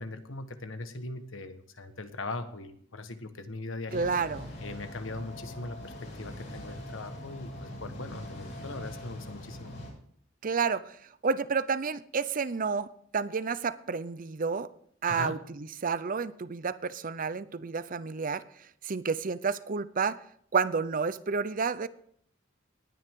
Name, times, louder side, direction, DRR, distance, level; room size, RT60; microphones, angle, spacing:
voice 1, 0.0-4.1 4.6-9.8 15.1-15.4, left 2 dB, 85° left, 8 dB, 1.4 m, -40 dB
sound 1, 3.9-9.9, equal, 65° left, 6.8 m, -42 dB
voice 2, 3.9-4.5 10.4-11.0 11.2-14.7 15.0-15.4 15.8-18.4 18.8-20.2 20.5-21.9, right 5 dB, 45° right, 15 dB, 0.6 m, -30 dB
19.5 x 9.4 x 3.7 m, 0.64 s
head